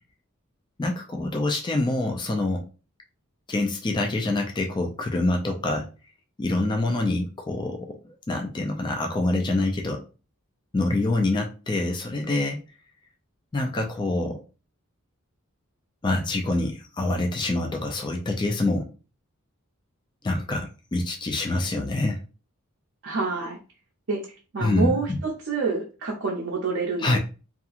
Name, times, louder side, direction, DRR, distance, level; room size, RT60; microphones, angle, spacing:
voice 1, 0.8-2.6 3.5-5.9 6.4-10.0 10.7-12.6 13.5-14.4 16.0-18.9 20.2-22.2 24.6-25.2 27.0-27.2, left 2 dB, 20° left, 2 dB, 0.3 m, -26 dB
voice 2, 23.0-23.6 24.1-24.2 24.5-27.2, right 4 dB, 55° right, -3 dB, 0.6 m, -27 dB
2.8 x 2.4 x 2.4 m, 0.34 s
head